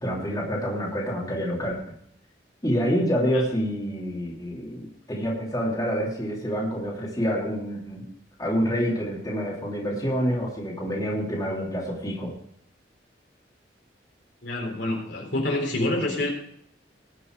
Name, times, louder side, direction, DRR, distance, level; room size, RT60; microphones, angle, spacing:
voice 1, 0.0-1.8 2.6-8.0 8.4-12.3, equal, 20° left, -4 dB, 3.1 m, -27 dB
voice 2, 14.4-16.3, left 1 dB, 70° left, 0 dB, 3.8 m, -27 dB
20.0 x 6.8 x 4.7 m, 0.69 s
head